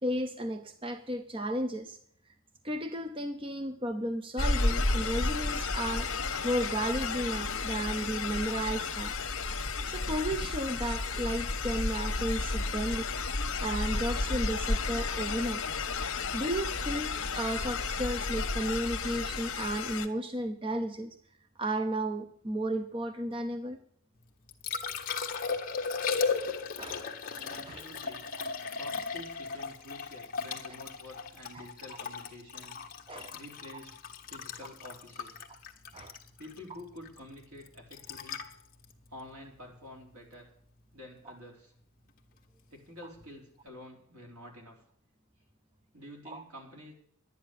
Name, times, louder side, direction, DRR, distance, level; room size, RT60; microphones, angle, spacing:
voice 1, 0.0-2.0 2.6-6.1 6.4-9.1 9.9-13.1 13.6-15.6 16.3-21.2 21.6-23.8 26.8-27.1 27.6-27.8 31.5-31.6 33.1-33.3 35.9-36.2 46.3-46.4, right 1 dB, 25° right, 8 dB, 0.7 m, -33 dB
sound 1, 4.4-20.1, left 3 dB, 60° left, 1.4 m, -32 dB
Liquid, 24.2-40.3 43.1-43.3, left 5 dB, 40° left, 1.3 m, -37 dB
voice 2, 27.4-28.3 28.7-32.8 33.3-34.0 34.3-35.4 36.4-38.4 39.1-40.5 40.9-41.7 42.7-44.8 45.9-46.9, left 1 dB, 80° right, 0 dB, 4.0 m, -49 dB
11.0 x 9.8 x 6.9 m, 0.63 s
head